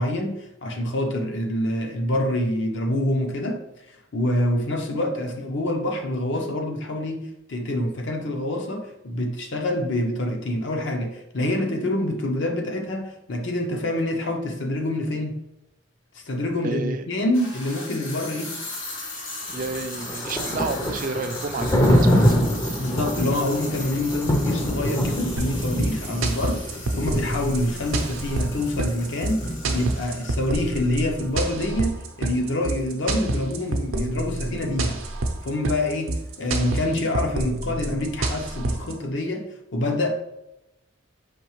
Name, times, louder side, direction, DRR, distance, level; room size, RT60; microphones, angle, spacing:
voice 1, 0.0-15.4 16.1-18.5 22.7-35.0 35.4-40.2, left 1 dB, 60° left, 0.7 m, -26 dB
sound 1, 14.0-14.1 15.1-15.2 17.2-31.3, left 2 dB, 75° left, 1.3 m, -38 dB
voice 2, 16.6-17.1 19.5-22.4 26.0-26.3, right 4 dB, 40° right, 0.3 m, -31 dB
Thunder, 19.5-31.3, equal, 20° left, 0.5 m, -26 dB
sound 2, 25.4-38.9, right 2 dB, 85° right, 0.6 m, -27 dB
5.2 x 3.1 x 3.1 m
head